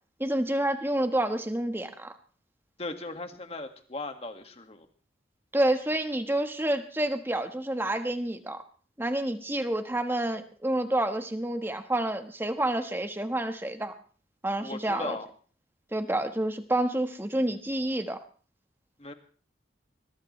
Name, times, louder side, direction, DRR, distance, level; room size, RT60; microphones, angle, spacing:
voice 1, 0.2-2.1 5.5-8.6 9.0-13.9 14.4-15.2 15.9-18.2, right 1 dB, 10° right, 7 dB, 1.3 m, -28 dB
voice 2, 2.8-4.9 14.6-15.3 19.0-19.1, left 2 dB, 35° left, 6 dB, 1.8 m, -37 dB
21.5 x 20.5 x 3.2 m, 0.42 s
head